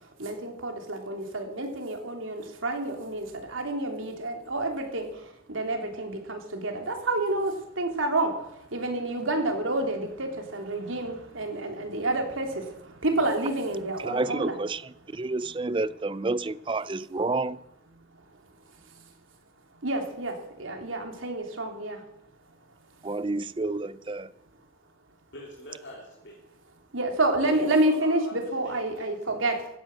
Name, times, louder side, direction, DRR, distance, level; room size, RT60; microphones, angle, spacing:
voice 1, 0.0-14.5 18.9-19.0 19.8-22.0 26.9-29.7, right 2 dB, 85° right, 3.2 m, -29 dB
voice 2, 14.0-17.6 23.0-24.3, right 3 dB, 25° right, 0.4 m, -30 dB
voice 3, 25.3-26.3 27.4-29.1, left 1 dB, 60° left, 3.6 m, -43 dB
16.0 x 10.0 x 7.6 m
head